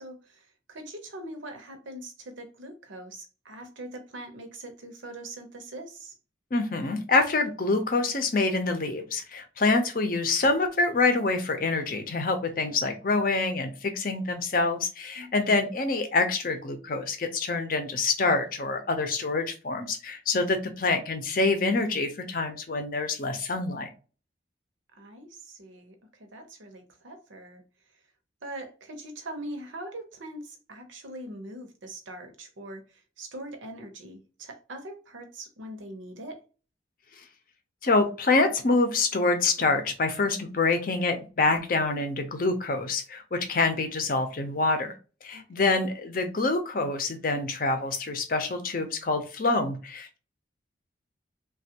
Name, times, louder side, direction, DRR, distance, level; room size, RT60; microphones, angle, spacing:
voice 1, 0.0-6.1 15.2-15.8 24.9-27.6 28.4-36.4 45.3-45.8, right 1 dB, 85° right, 0.8 m, -42 dB
voice 2, 6.5-23.9 37.8-44.9 45.2-50.2, left 3 dB, 45° left, 0.6 m, -26 dB
3.3 x 2.3 x 2.8 m
head